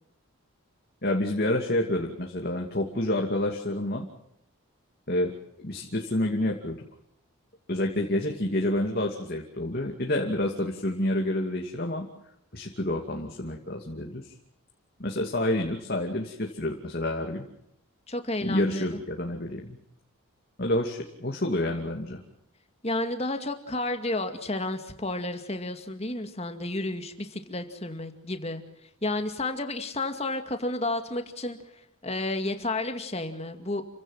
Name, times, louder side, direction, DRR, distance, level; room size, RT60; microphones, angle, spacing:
voice 1, 1.0-4.1 5.1-5.3 5.6-6.8 7.7-12.1 12.5-14.3 15.0-17.4 18.4-19.8 20.6-22.2, left 1 dB, 45° left, 1 dB, 2.7 m, -28 dB
voice 2, 18.1-19.0 22.8-28.6 29.0-31.6 32.0-33.8, left 2 dB, 30° left, 7 dB, 2.3 m, -31 dB
29.5 x 16.5 x 7.4 m, 0.78 s
head